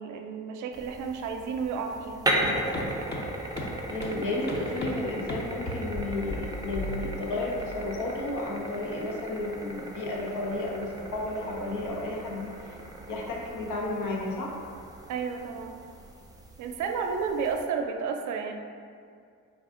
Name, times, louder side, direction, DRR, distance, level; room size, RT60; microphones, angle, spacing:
voice 1, 0.0-2.3 15.1-15.8 16.6-18.5, right 5 dB, 75° right, 4 dB, 0.5 m, -32 dB
sound 1, 0.7-17.7, right 1 dB, 10° right, 0.5 m, -37 dB
sound 2, 2.4-2.5 2.7-2.8 3.1-3.2 3.6-3.7 4.0-4.1 4.5-4.9 5.3-5.4 5.7-6.0 6.3-6.4 6.7-7.2, left 1 dB, 35° left, 0.7 m, -34 dB
voice 2, 3.9-12.8 13.1-14.6, left 2 dB, 80° left, -2 dB, 0.9 m, -32 dB
4.7 x 2.5 x 3.7 m, 2.3 s
cardioid pair, 90°, 30 cm